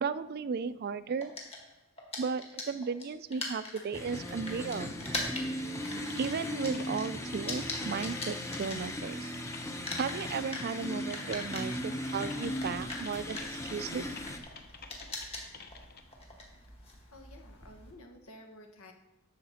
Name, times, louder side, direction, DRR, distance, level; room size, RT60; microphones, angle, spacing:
voice 1, 0.0-1.3 2.2-4.9 6.2-9.3 10.0-14.0, right 5 dB, 45° right, 15 dB, 0.4 m, -35 dB
sound 1, 1.2-9.4 9.6-17.9, left 2 dB, 30° left, 1.9 m, -42 dB
sound 2, 3.9-14.4, left 1 dB, 15° left, 0.8 m, -38 dB
Typing, 6.1-16.0, left 5 dB, 45° left, 0.9 m, -50 dB
voice 2, 17.1-18.9, left 1 dB, 85° left, 4 dB, 1.5 m, -52 dB
11.5 x 6.5 x 4.2 m, 0.98 s
head